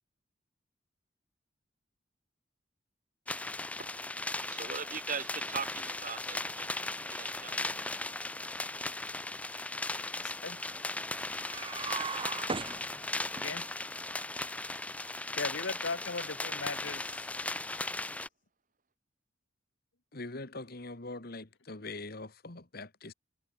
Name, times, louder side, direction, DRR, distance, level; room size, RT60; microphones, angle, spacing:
sound 1, 3.3-18.3, left 2 dB, 5° left, 0.4 m, -37 dB
voice 1, 3.8-6.8 7.1-7.8 15.3-15.4, right 6 dB, 45° right, 1.6 m, -41 dB
voice 2, 10.2-10.6 13.1-13.7 15.4-17.3, left 4 dB, 80° left, 1.5 m, -38 dB
sound 2, 11.4-13.4, right 4 dB, 30° right, 0.9 m, -37 dB
voice 3, 20.1-23.1, left 2 dB, 55° left, 1.9 m, -43 dB
head